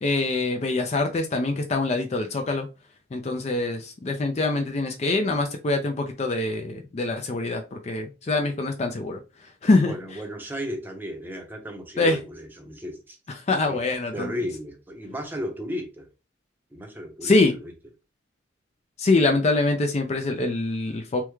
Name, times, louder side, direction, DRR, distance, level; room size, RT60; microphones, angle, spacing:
voice 1, 0.0-2.7 3.1-9.2 9.6-9.9 12.0-12.2 13.5-14.3 17.2-17.5 19.0-21.2, left 2 dB, 35° left, 0.4 m, -24 dB
voice 2, 9.9-13.2 13.7-13.8 14.1-16.1 16.7-17.7, equal, 10° right, 0.7 m, -34 dB
3.5 x 2.1 x 3.0 m
head